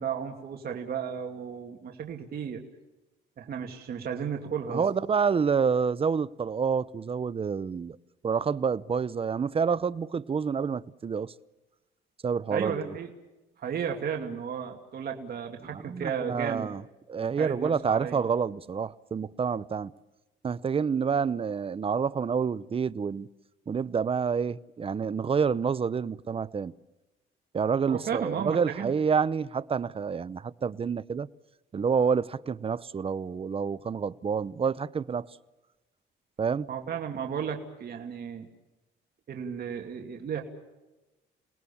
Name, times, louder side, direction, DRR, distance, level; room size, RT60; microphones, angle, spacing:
voice 1, 0.0-2.6 3.4-4.8 12.5-13.1 13.6-16.7 17.4-18.2 27.9-28.9 36.7-38.5 39.3-40.4, right 7 dB, 50° right, 2.6 m, -34 dB
voice 2, 4.7-8.0 8.2-11.3 12.2-12.9 15.7-16.8 17.1-19.9 20.4-23.3 23.7-26.7 27.5-31.3 31.7-35.3 36.4-36.7, right 6 dB, 30° right, 0.7 m, -28 dB
29.5 x 19.0 x 7.2 m
cardioid pair, 110°, 20 cm